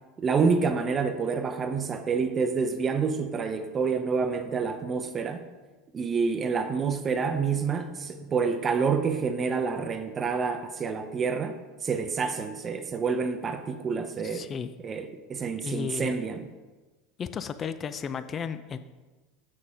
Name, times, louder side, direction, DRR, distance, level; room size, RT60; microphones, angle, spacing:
voice 1, 0.2-5.4 5.9-14.5 14.8-16.4, right 5 dB, 25° right, 8 dB, 0.6 m, -28 dB
voice 2, 14.2-14.7 15.6-16.2 17.2-18.8, left 6 dB, 25° left, 12 dB, 0.4 m, -34 dB
7.6 x 6.4 x 5.6 m, 1.2 s
supercardioid pair, 140°, 0 cm